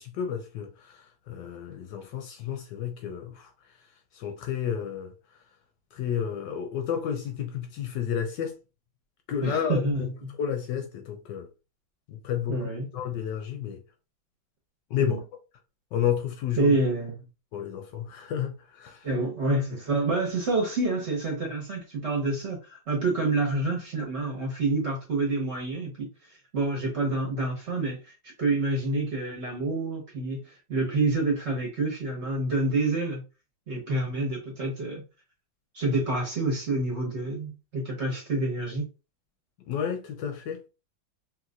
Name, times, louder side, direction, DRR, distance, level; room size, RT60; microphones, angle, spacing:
voice 1, 0.0-3.5 4.1-5.1 5.9-8.5 9.3-10.1 10.4-11.5 12.1-13.8 14.9-15.2 15.9-16.8 17.5-19.1 39.7-40.7, left 9 dB, 75° left, 1.1 m, -31 dB
voice 2, 9.4-10.1 12.5-12.9 15.0-15.2 16.6-17.1 19.0-26.1 26.5-28.1 28.4-33.2 33.7-35.0 35.7-38.9, right 2 dB, 45° right, 1.1 m, -27 dB
3.1 x 2.8 x 2.4 m
omnidirectional pair, 2.1 m